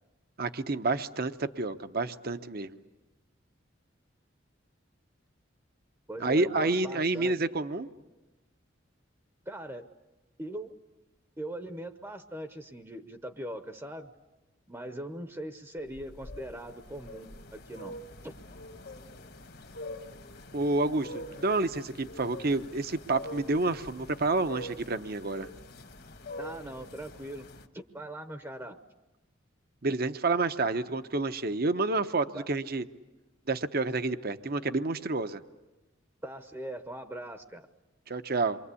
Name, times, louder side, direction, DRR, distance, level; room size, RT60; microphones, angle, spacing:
voice 1, 0.4-2.8 6.2-7.9 20.5-25.5 29.8-32.8 33.5-35.4 38.1-38.6, right 3 dB, 50° right, 10 dB, 0.9 m, -29 dB
voice 2, 6.1-7.4 9.5-9.9 10.4-10.7 11.4-14.1 14.7-18.0 18.2-18.3 26.4-28.8 32.3-32.5 36.2-37.7, right 1 dB, 15° right, 8 dB, 0.9 m, -41 dB
sound 1, 15.9-27.7, left 1 dB, 55° left, 1.6 m, -45 dB
28.0 x 24.0 x 8.4 m, 1.1 s
head